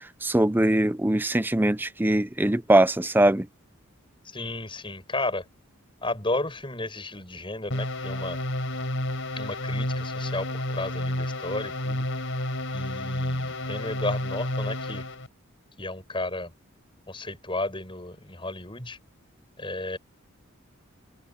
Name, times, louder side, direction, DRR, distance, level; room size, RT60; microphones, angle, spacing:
voice 1, 0.2-3.5, right 1 dB, 10° right, 0.5 m, -21 dB
voice 2, 4.2-5.4 6.0-8.4 9.4-12.1 12.7-15.1 15.8-16.5 17.1-19.0 19.6-20.0, left 2 dB, 25° left, 6.8 m, -33 dB
sound 1, 7.7-15.3, left 1 dB, 60° left, 7.5 m, -30 dB
head